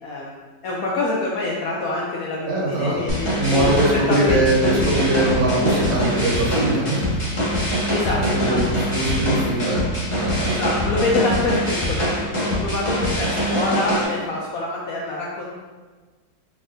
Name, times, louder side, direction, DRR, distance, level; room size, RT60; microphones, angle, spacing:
voice 1, 0.0-5.2 7.9-8.9 10.4-15.6, left 2 dB, 75° left, -4 dB, 0.8 m, -26 dB
voice 2, 2.5-3.0 3.4-7.0 8.4-9.7 10.1-10.6, right 1 dB, 80° right, -7 dB, 2.1 m, -21 dB
sound 1, 3.1-14.0, equal, 35° left, 0.5 m, -23 dB
4.1 x 3.4 x 2.6 m, 1.3 s
omnidirectional pair, 2.0 m